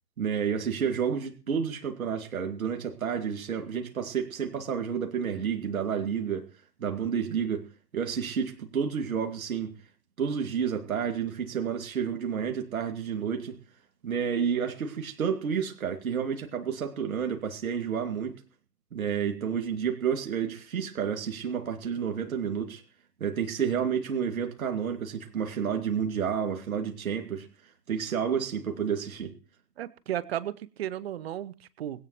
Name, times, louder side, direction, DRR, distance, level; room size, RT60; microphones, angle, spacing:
voice 1, 0.2-6.5 6.8-7.7 7.9-9.7 10.2-13.6 14.0-18.3 18.9-22.8 23.2-27.5 27.9-29.3, right 7 dB, 55° right, 2.4 m, -30 dB
voice 2, 29.8-32.1, right 11 dB, 40° right, 1.0 m, -34 dB
20.0 x 17.0 x 3.0 m
figure-of-eight pair, 120°, 49 cm